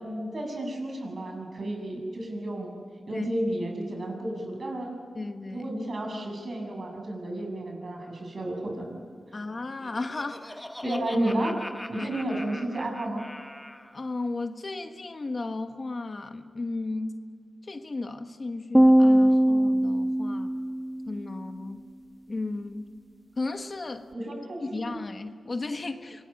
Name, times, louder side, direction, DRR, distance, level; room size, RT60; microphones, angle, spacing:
voice 1, 0.0-2.7 3.1-5.0 5.5-9.0 10.8-11.6 11.9-13.3 24.1-25.0, right 1 dB, 55° right, 2 dB, 7.4 m, -32 dB
voice 2, 5.1-5.7 9.3-11.0 11.9-12.1 13.9-17.2 17.6-20.5 21.1-21.8 22.3-23.0 23.4-24.1 24.6-26.3, left 3 dB, 45° left, 7 dB, 1.5 m, -34 dB
Laughter, 9.5-14.0, left 1 dB, 15° left, 1.4 m, -43 dB
sound 1, 18.7-21.2, right 1 dB, 5° right, 0.6 m, -20 dB
25.5 x 20.5 x 8.7 m, 2.1 s
cardioid pair, 70°, 0 cm